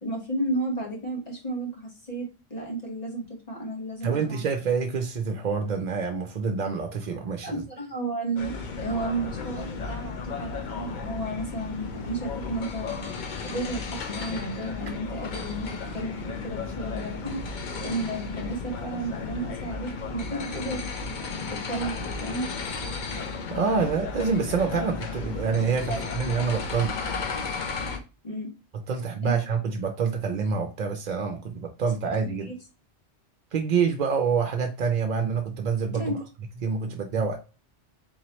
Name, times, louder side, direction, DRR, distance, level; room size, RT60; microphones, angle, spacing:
voice 1, 0.0-4.4 7.4-13.1 13.4-17.4 17.8-20.8 21.5-22.5 25.9-26.0 26.8-26.9 28.2-28.5 29.2-29.4 32.2-32.5 35.9-36.2, right 2 dB, 40° left, 1.4 m, -33 dB
voice 2, 4.0-7.6 23.5-27.2 28.9-32.5 33.5-36.2 36.6-37.4, right 5 dB, 55° right, 0.6 m, -27 dB
sound 1, 8.4-28.0, left 4 dB, 55° left, 0.7 m, -34 dB
4.0 x 3.0 x 2.9 m
omnidirectional pair, 1.1 m